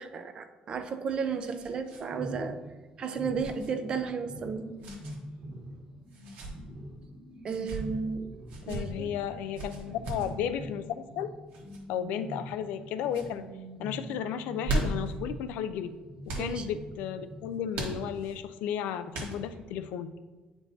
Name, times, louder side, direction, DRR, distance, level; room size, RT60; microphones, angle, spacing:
voice 1, 0.0-2.6 3.0-4.6 7.4-9.1 16.4-16.7, right 5 dB, 35° right, 8 dB, 0.4 m, -34 dB
sound 1, 0.7-2.0 2.3-2.5 3.4-3.7 4.8-5.2 6.1-6.5 7.4-7.8 8.5-8.8 9.5-10.3 11.5-11.8 12.4-12.8 13.1-13.3 14.4-15.1 16.2-16.5 17.7-18.4 19.1-19.7, right 2 dB, 75° right, 1.3 m, -36 dB
sound 2, 2.1-15.7 16.0-17.9 18.2-18.3, equal, 20° right, 1.3 m, -44 dB
voice 2, 8.7-11.3 11.9-13.4 13.8-15.9 16.3-20.1, left 9 dB, 90° left, 11 dB, 0.4 m, -34 dB
8.8 x 4.5 x 2.7 m, 1.3 s
cardioid pair, 155°, 3 cm